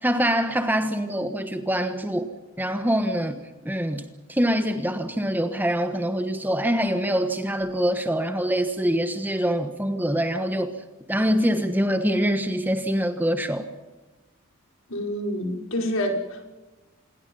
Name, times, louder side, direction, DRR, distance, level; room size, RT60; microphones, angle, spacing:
voice 1, 0.0-2.3 2.6-10.8 11.1-13.7, equal, 10° right, 8 dB, 1.2 m, -24 dB
voice 2, 14.9-16.4, equal, 60° left, 2 dB, 5.1 m, -27 dB
27.5 x 22.0 x 5.5 m, 1.1 s
head